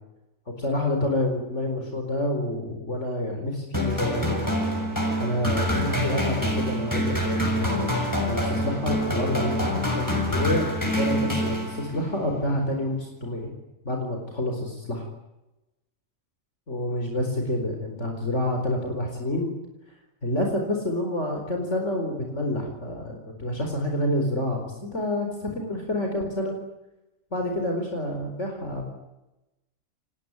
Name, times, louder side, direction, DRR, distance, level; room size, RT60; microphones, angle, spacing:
voice 1, 0.6-4.4 5.2-13.5 13.8-15.0 16.7-19.5 20.2-26.5 27.3-28.9, left 1 dB, 60° left, 2 dB, 4.8 m, -28 dB
sound 1, 3.7-12.1, equal, 15° left, 6.7 m, -26 dB
29.5 x 20.5 x 9.6 m, 0.99 s
omnidirectional pair, 1.4 m